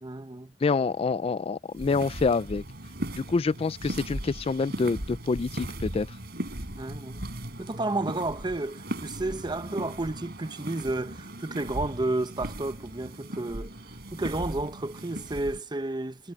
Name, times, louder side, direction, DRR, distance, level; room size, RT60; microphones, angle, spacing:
voice 1, 0.0-0.5 6.8-7.2 7.6-13.7 14.1-16.3, right 2 dB, 25° right, 0.9 m, -31 dB
voice 2, 0.6-2.6 3.2-6.1, left 4 dB, 30° left, 0.3 m, -27 dB
sound 1, 1.7-15.6, right 1 dB, 60° right, 4.7 m, -38 dB
head